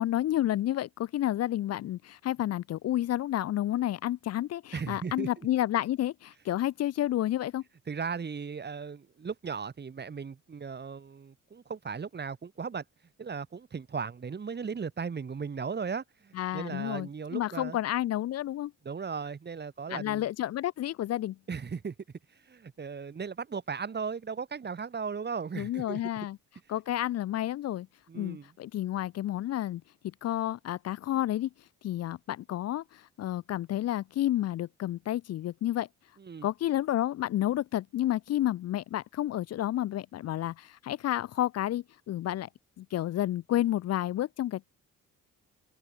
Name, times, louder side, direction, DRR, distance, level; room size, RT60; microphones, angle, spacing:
voice 1, 0.0-7.6 16.4-18.7 19.9-21.4 25.6-26.4 26.7-27.9 28.1-29.8 30.2-31.5 31.8-35.9 36.4-42.5 42.8-44.7, left 13 dB, 55° left, 0.5 m, -30 dB
voice 2, 4.7-5.3 7.9-12.8 13.2-17.8 18.8-20.3 21.5-21.9 22.3-26.0 28.1-28.5 36.2-36.5, right 5 dB, 35° right, 2.1 m, -37 dB
open air
cardioid pair, 90°, 30 cm